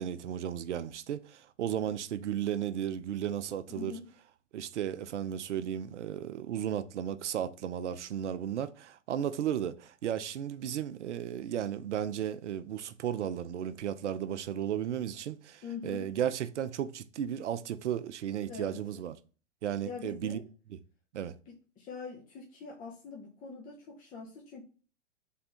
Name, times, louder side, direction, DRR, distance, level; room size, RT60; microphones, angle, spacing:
voice 1, 0.0-4.0 4.5-19.2 19.6-20.4 21.1-21.3, right 10 dB, 70° right, 0.6 m, -34 dB
voice 2, 3.8-4.1 15.6-16.1 18.5-18.8 19.8-20.4 21.5-24.6, left 5 dB, 25° left, 0.8 m, -43 dB
3.6 x 3.2 x 4.2 m
hypercardioid pair, 115°, 36 cm